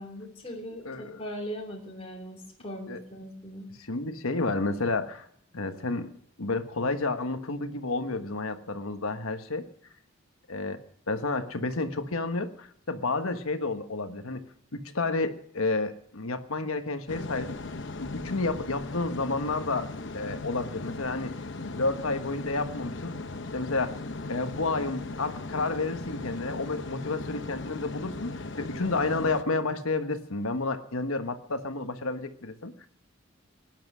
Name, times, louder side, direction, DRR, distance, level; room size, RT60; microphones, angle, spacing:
voice 1, 0.0-3.7, equal, 25° left, 1 dB, 3.1 m, -39 dB
voice 2, 0.8-1.2 2.9-3.0 3.8-5.3 5.5-9.7 10.5-10.8 11.1-14.4 14.7-17.6 18.0-19.9 20.1-21.3 21.6-23.1 23.5-24.0 24.3-32.7, left 3 dB, 85° left, 8 dB, 1.3 m, -30 dB
sound 1, 17.1-29.4, left 3 dB, 55° left, 0.9 m, -38 dB
18.0 x 10.5 x 6.2 m, 0.68 s
head